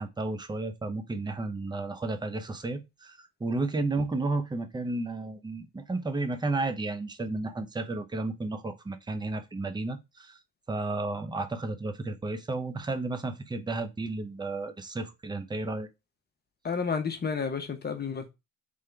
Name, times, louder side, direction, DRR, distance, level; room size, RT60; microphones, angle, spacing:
voice 1, 0.0-10.4 10.7-15.9, right 2 dB, 15° right, 0.7 m, -32 dB
voice 2, 16.6-18.3, left 5 dB, 30° left, 1.0 m, -31 dB
3.6 x 3.4 x 3.2 m
supercardioid pair, 85°, 34 cm